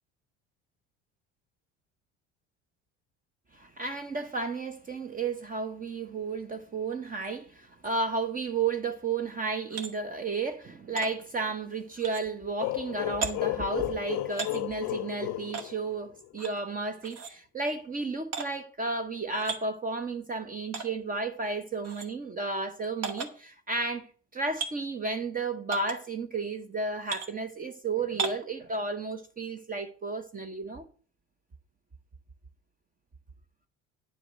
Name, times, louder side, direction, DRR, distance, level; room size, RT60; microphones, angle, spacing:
voice 1, 3.5-24.1 24.3-30.9, right 3 dB, 25° right, 1.0 m, -33 dB
sound 1, 9.7-9.9 11.0-11.1 12.0-12.2 13.2-13.3 14.3-14.6 15.5-15.7 16.4-16.6 17.0-17.3 18.3-18.5 19.3-19.6 20.7-20.9 21.8-22.1 23.0-23.3 24.6-24.7 25.7-26.0 27.1-27.3 28.2-28.5, right 5 dB, 50° right, 1.9 m, -34 dB
sound 2, 12.6-16.3, left 17 dB, 60° left, 0.6 m, -33 dB
10.0 x 4.9 x 7.8 m
supercardioid pair, 80°, 31 cm